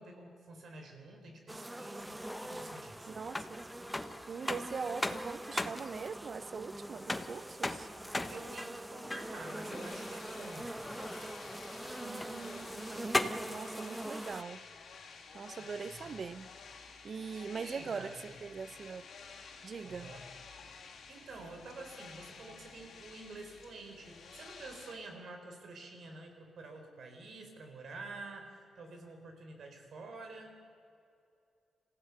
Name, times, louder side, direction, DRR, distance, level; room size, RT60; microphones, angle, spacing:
voice 1, 0.0-3.1 8.3-10.8 15.6-16.2 17.1-18.2 19.8-20.3 20.7-30.6, right 3 dB, 65° right, 4.4 m, -49 dB
Bees getting a drink, 1.5-14.4, right 1 dB, 10° right, 0.6 m, -44 dB
sound 1, 2.0-13.6, left 2 dB, 15° left, 1.2 m, -40 dB
voice 2, 3.1-3.6 4.3-7.9 12.0-14.6 15.3-16.5 17.0-19.1 19.6-20.1, right 5 dB, 50° right, 0.8 m, -42 dB
sound 2, 9.1-24.9, left 5 dB, 70° left, 2.9 m, -52 dB
26.5 x 15.5 x 6.7 m
cardioid pair, 85°, 0 cm